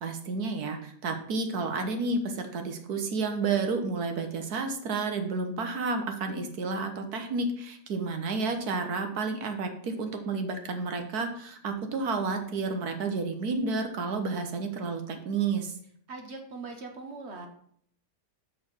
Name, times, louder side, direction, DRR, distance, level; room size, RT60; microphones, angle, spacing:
voice 1, 0.0-15.7, right 4 dB, 70° right, 6 dB, 1.6 m, -31 dB
voice 2, 16.1-17.5, right 3 dB, 45° right, 4 dB, 1.2 m, -41 dB
6.5 x 5.9 x 5.7 m, 0.64 s
omnidirectional pair, 1.7 m